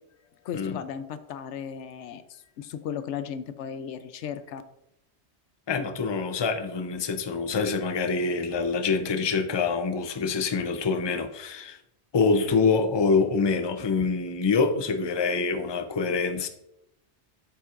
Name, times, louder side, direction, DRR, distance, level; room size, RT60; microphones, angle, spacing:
voice 1, 0.4-4.6, left 8 dB, 85° left, 12 dB, 0.9 m, -36 dB
voice 2, 5.7-11.8 12.1-16.5, left 4 dB, 30° left, 7 dB, 0.5 m, -25 dB
8.4 x 7.2 x 2.5 m, 0.84 s
omnidirectional pair, 1.2 m